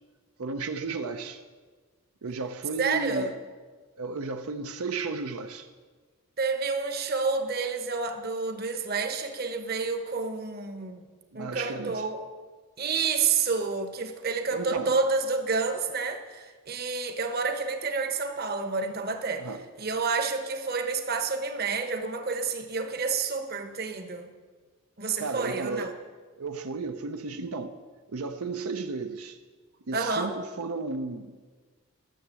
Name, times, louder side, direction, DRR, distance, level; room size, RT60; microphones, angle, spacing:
voice 1, 0.4-1.4 2.2-3.3 4.0-5.7 11.3-12.1 14.5-15.0 19.4-19.6 25.2-26.0 26.4-27.7 28.1-29.4 29.9-31.4, right 4 dB, 85° right, 0.6 m, -34 dB
voice 2, 2.8-3.3 6.4-11.0 11.3-12.2 12.8-19.5 19.8-24.3 25.0-25.9 29.9-30.3, right 4 dB, 45° right, 1.0 m, -29 dB
12.5 x 7.0 x 7.5 m
head